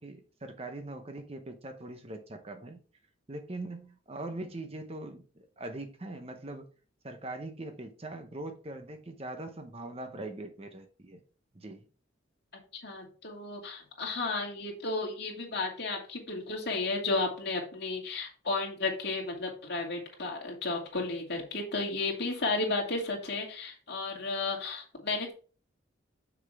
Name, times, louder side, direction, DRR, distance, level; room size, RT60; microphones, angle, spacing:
voice 1, 0.0-2.8 3.3-6.6 7.0-11.2 11.5-11.9, right 2 dB, 30° right, 0.8 m, -41 dB
voice 2, 12.7-25.3, left 3 dB, 55° left, 2.5 m, -33 dB
7.2 x 6.6 x 3.5 m
head